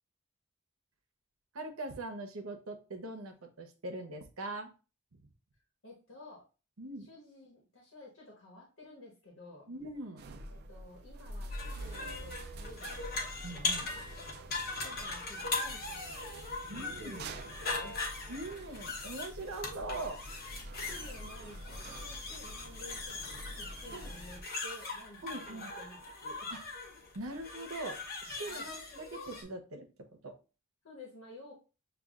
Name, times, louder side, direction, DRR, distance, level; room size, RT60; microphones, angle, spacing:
voice 1, 1.5-4.7 6.8-7.1 9.7-10.2 13.4-13.9 16.7-17.3 18.3-20.2 23.9-24.1 25.2-25.7 26.5-26.6 27.1-30.4, right 2 dB, 85° right, 5 dB, 0.8 m, -42 dB
voice 2, 5.8-6.4 7.0-9.6 10.5-13.1 13.9-16.3 16.9-18.0 20.8-26.5 28.5-28.6 30.8-31.5, left 1 dB, 70° left, -2 dB, 1.2 m, -52 dB
sound 1, 10.2-24.4, right 1 dB, 50° right, 0.4 m, -47 dB
sound 2, 11.5-29.4, left 3 dB, 45° left, 0.9 m, -40 dB
6.8 x 2.3 x 2.4 m, 0.33 s
head